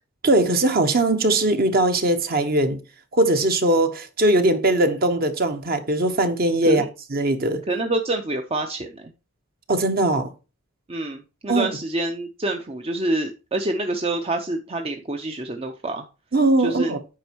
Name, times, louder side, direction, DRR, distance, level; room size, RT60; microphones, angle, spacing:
voice 1, 0.2-2.8 3.1-6.8 7.1-7.6 9.7-10.3 11.5-11.7 16.3-17.0, right 2 dB, 45° right, 1.1 m, -20 dB
voice 2, 7.7-9.1 10.9-16.1 16.6-17.0, right 2 dB, 25° right, 0.6 m, -27 dB
8.9 x 5.2 x 4.5 m
head